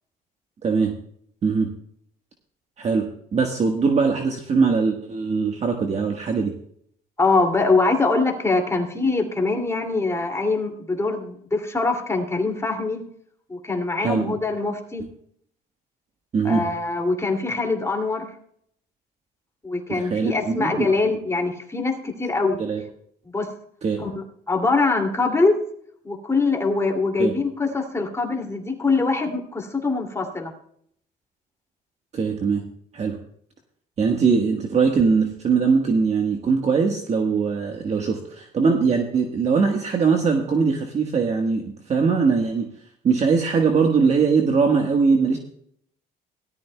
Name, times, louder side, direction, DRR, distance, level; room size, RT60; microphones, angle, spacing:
voice 1, 0.6-0.9 1.4-1.7 2.8-6.5 14.0-14.3 16.3-16.7 19.9-20.9 22.6-22.8 23.8-24.0 27.2-27.3 32.1-32.6 32.9-33.2 34.0-42.7 43.0-45.4, right 5 dB, 40° right, 2 dB, 1.5 m, -21 dB
voice 2, 7.2-13.0 13.5-15.0 16.4-18.3 19.6-22.6 23.3-23.5 24.0-25.6 26.0-30.5, left 3 dB, 15° left, 2 dB, 2.6 m, -23 dB
17.5 x 13.0 x 2.3 m, 0.65 s
cardioid pair, 110°, 17 cm